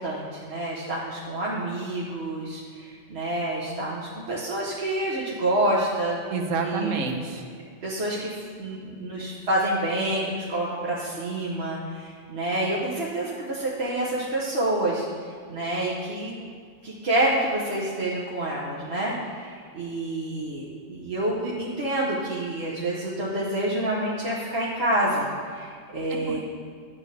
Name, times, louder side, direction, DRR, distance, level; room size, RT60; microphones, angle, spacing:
voice 1, 0.0-6.2 6.6-6.9 7.8-15.0 15.5-16.3 16.8-20.6 20.9-26.4, right 1 dB, 55° right, -6 dB, 1.3 m, -28 dB
voice 2, 6.3-7.5 26.1-26.4, right 4 dB, 80° right, 4 dB, 1.3 m, -29 dB
11.5 x 8.9 x 3.3 m, 2.1 s
omnidirectional pair, 1.3 m